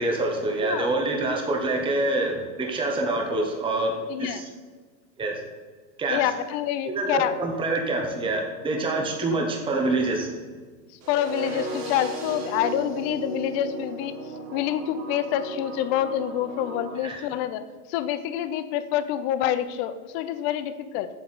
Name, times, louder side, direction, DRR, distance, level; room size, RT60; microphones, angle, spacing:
voice 1, 0.0-4.5 5.2-5.4 6.0-6.2 6.9-10.3 17.0-17.2, right 2 dB, 10° right, 2 dB, 0.9 m, -26 dB
voice 2, 0.6-0.9 4.1-4.4 6.1-7.3 9.3-9.4 11.1-14.1 14.5-21.1, left 11 dB, 45° left, 12 dB, 0.7 m, -27 dB
sound 1, 11.0-17.0, right 3 dB, 35° right, 1.5 m, -36 dB
7.7 x 6.9 x 4.1 m, 1.4 s
supercardioid pair, 130°, 47 cm